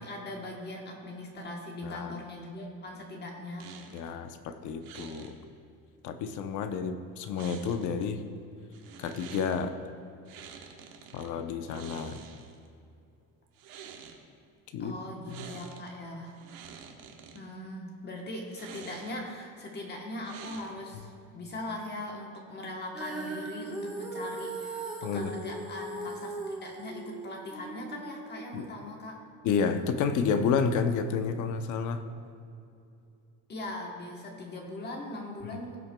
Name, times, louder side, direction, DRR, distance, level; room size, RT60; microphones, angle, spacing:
voice 1, 0.0-3.7 14.8-16.3 17.3-29.2 33.5-35.8, left 1 dB, 30° left, 0 dB, 1.1 m, -40 dB
sound 1, 3.6-4.1 4.8-5.3 7.4-8.1 8.7-9.6 10.3-11.3 11.7-12.7 13.5-14.2 15.2-15.9 16.3-17.4 18.5-19.3 20.2-20.9, right 7 dB, 85° right, 1.2 m, -48 dB
voice 2, 3.9-5.4 6.0-8.2 9.0-9.7 11.1-12.2 14.7-15.0 15.3-15.5 25.0-25.3 28.5-28.6 29.4-32.0 35.5-35.6, left 6 dB, 60° left, 8 dB, 0.7 m, -30 dB
Female singing, 22.9-29.2, right 2 dB, 5° right, 1.2 m, -39 dB
17.0 x 7.4 x 2.2 m, 2.6 s
cardioid pair, 170°, 35 cm